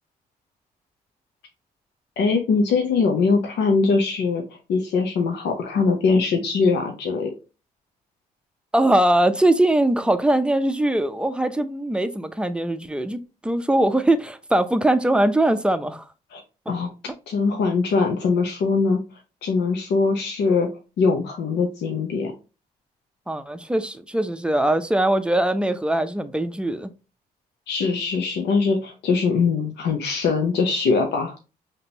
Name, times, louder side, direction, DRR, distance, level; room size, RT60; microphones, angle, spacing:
voice 1, 2.2-7.3 16.3-16.4 16.7-16.9 17.3-19.0 19.4-20.7 21.0-22.3 27.7-31.4, left 4 dB, 65° left, 0.8 m, -22 dB
voice 2, 8.7-16.0 16.7-16.8 23.3-26.9, right 1 dB, 5° right, 0.6 m, -21 dB
5.1 x 2.9 x 2.8 m
hypercardioid pair, 45°, 19 cm